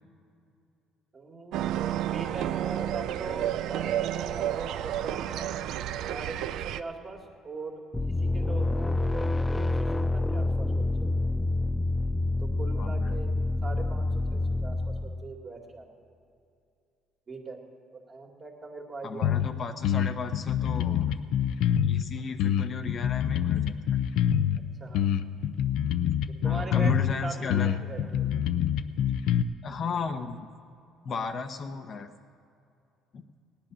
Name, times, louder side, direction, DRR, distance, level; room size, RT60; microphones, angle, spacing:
voice 1, 1.1-1.7 2.1-5.6 6.1-11.1 12.4-13.3 13.6-15.9 17.3-17.6 17.9-19.5 24.8-25.1 26.3-28.4, right 3 dB, 35° right, 1 dB, 2.2 m, -41 dB
sound 1, 1.5-6.8, right 11 dB, 70° right, 0.4 m, -31 dB
sound 2, 7.9-15.4, left 2 dB, 10° left, 0.3 m, -27 dB
voice 2, 12.8-13.2 19.0-21.2 21.8-23.8 26.4-27.8 29.6-30.4 31.0-32.1 33.1-33.2, left 4 dB, 40° left, 6 dB, 0.8 m, -34 dB
sound 3, 19.2-19.5 19.8-22.0 22.4-24.6 24.9-27.2 27.5-29.4, left 9 dB, 75° left, 0.5 m, -25 dB
17.5 x 10.5 x 6.2 m, 2.5 s
cardioid pair, 120°, 0 cm